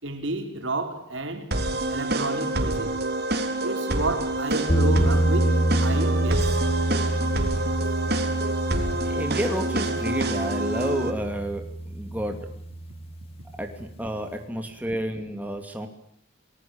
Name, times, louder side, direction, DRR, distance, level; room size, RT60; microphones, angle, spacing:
voice 1, 0.0-1.5 1.9-3.0 3.6-6.6, right 2 dB, 70° right, 4.5 m, -31 dB
sound 1, 1.5-11.1, right 2 dB, 50° right, 3.7 m, -27 dB
sound 2, 4.7-13.6, right 1 dB, 30° left, 2.5 m, -27 dB
voice 2, 9.0-12.5 13.6-15.9, equal, 10° right, 2.6 m, -30 dB
29.5 x 20.5 x 8.8 m
head